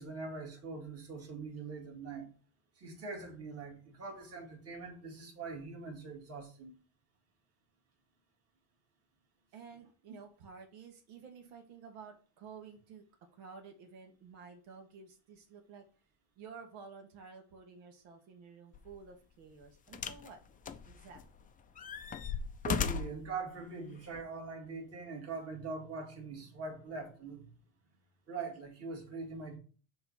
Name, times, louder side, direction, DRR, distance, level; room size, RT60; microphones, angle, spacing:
voice 1, 0.0-2.3 2.8-6.7 22.6-27.5 28.3-29.6, right 4 dB, 30° right, 2.2 m, -42 dB
voice 2, 9.5-13.0 13.3-15.9 16.4-20.4 20.8-21.5, right 5 dB, 80° right, 1.6 m, -52 dB
sound 1, 18.7-18.9 19.9-20.3 20.6-21.4 21.8-23.2 24.1-24.2, left 6 dB, 20° left, 0.4 m, -36 dB
7.0 x 3.2 x 5.5 m
cardioid pair, 125°, 46 cm